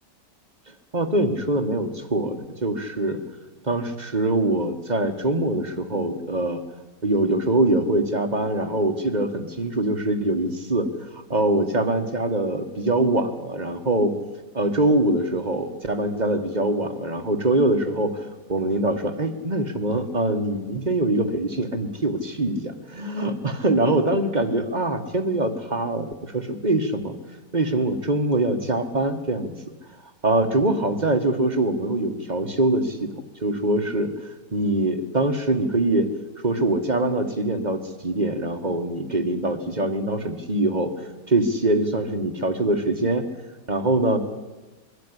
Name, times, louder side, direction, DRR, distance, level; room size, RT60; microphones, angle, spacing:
voice 1, 0.9-3.2 3.6-6.6 7.0-10.9 11.1-14.1 14.5-27.2 27.5-29.5 30.2-36.1 36.4-40.9 41.3-43.2 43.7-44.2, right 2 dB, 25° right, 7 dB, 1.4 m, -23 dB
22.0 x 13.0 x 9.9 m, 1.2 s
omnidirectional pair, 1.9 m